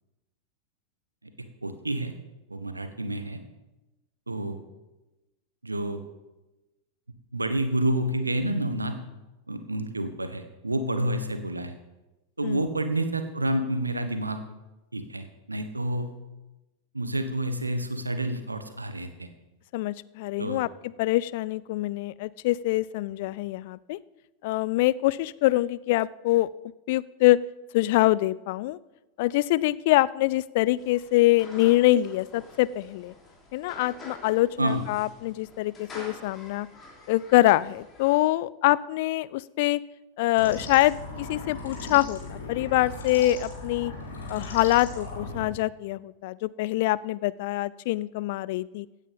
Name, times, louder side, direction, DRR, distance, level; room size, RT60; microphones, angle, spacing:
voice 1, 1.4-2.1 2.5-3.4 4.3-4.6 5.6-6.0 7.3-9.0 9.5-11.7 12.4-14.4 14.9-16.1 16.9-19.3 20.4-20.6 34.6-34.8, right 1 dB, 80° right, 9 dB, 1.3 m, -29 dB
voice 2, 19.7-20.7 21.0-24.0 24.4-26.5 26.9-27.4 27.7-28.8 29.2-33.1 33.5-36.7 37.1-39.8 40.2-43.9 44.3-48.9, left 17 dB, 50° left, 20 dB, 0.4 m, -24 dB
sound 1, 30.8-38.2, left 2 dB, 25° left, 3.3 m, -48 dB
sound 2, 40.4-45.5, left 2 dB, 70° left, 3.6 m, -38 dB
16.0 x 9.1 x 5.4 m, 1.0 s
figure-of-eight pair, 90°, 0 cm